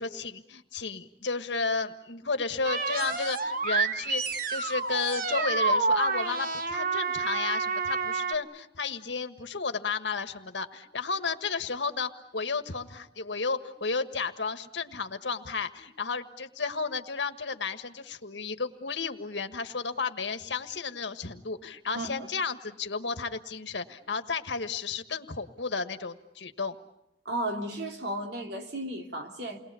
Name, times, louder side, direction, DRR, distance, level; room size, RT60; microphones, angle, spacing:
voice 1, 0.0-26.7, left 4 dB, 90° left, 9 dB, 1.6 m, -33 dB
sound 1, 2.6-8.3, right 4 dB, 50° right, 1.3 m, -29 dB
voice 2, 21.9-22.3 27.2-29.6, right 1 dB, 70° right, 3 dB, 3.2 m, -34 dB
29.0 x 21.5 x 8.4 m, 0.80 s
head